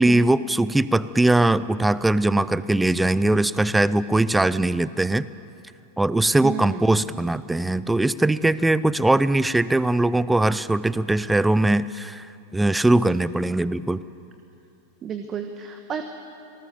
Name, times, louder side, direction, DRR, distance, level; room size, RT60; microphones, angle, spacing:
voice 1, 0.0-5.3 6.0-12.3 12.5-14.0, right 2 dB, 5° right, 17 dB, 0.6 m, -21 dB
voice 2, 6.4-6.8 15.0-16.1, right 7 dB, 25° right, 6 dB, 1.3 m, -31 dB
27.5 x 19.0 x 7.0 m, 2.7 s
figure-of-eight pair, 90°, 0 cm